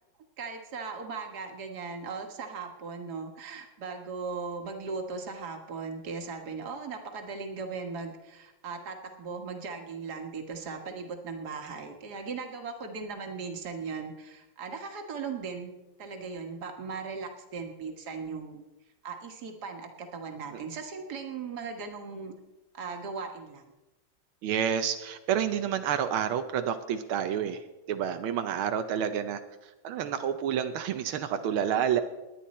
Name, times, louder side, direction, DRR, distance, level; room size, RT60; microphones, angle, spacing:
voice 1, 0.4-15.7 16.0-18.7 19.0-22.3 22.7-23.7, right 4 dB, 50° right, 5 dB, 1.9 m, -38 dB
voice 2, 24.4-27.6 27.9-29.4 29.8-32.0, right 9 dB, 85° right, 8 dB, 1.6 m, -29 dB
19.5 x 10.5 x 4.2 m, 1.0 s
omnidirectional pair, 2.2 m